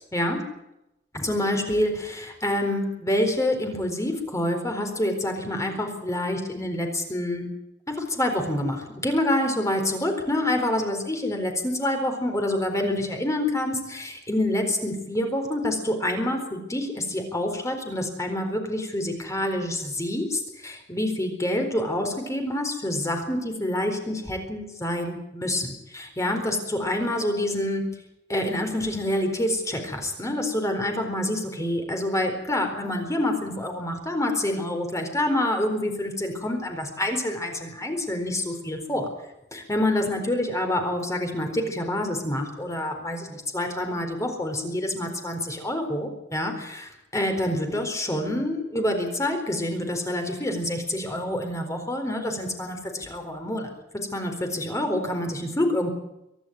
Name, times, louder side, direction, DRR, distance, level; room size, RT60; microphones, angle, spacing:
voice 1, 1.1-7.5 7.9-27.8 28.3-39.1 39.5-53.7 54.1-55.9, left 1 dB, 20° left, 5 dB, 4.2 m, -27 dB
24.5 x 11.5 x 9.6 m, 0.86 s
head